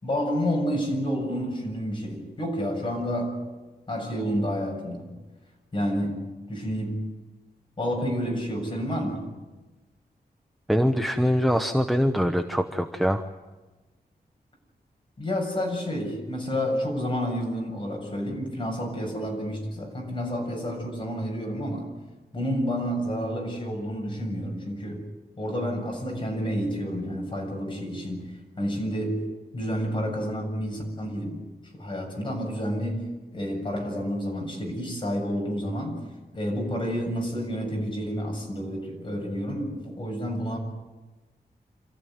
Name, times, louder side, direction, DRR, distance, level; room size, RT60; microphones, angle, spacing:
voice 1, 0.0-3.4 3.9-5.2 5.7-7.0 7.8-9.3 15.2-21.9 22.3-25.0 25.4-31.4 31.7-36.0 36.3-40.6, equal, 30° left, 0 dB, 7.5 m, -30 dB
voice 2, 10.7-13.2, equal, ahead, 6 dB, 0.9 m, -23 dB
27.5 x 14.5 x 9.4 m, 1.2 s
wide cardioid pair, 150°, 17 cm